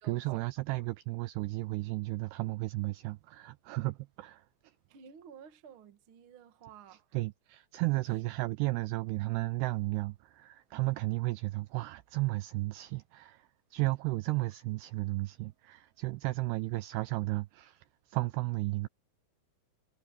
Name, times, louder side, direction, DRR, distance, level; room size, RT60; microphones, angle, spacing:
voice 1, 0.0-4.4 7.1-18.9, right 21 dB, 90° right, 2.3 m, -34 dB
voice 2, 4.9-7.0 7.8-8.0, right 7 dB, 65° right, 1.2 m, -53 dB
omnidirectional pair, 5.2 m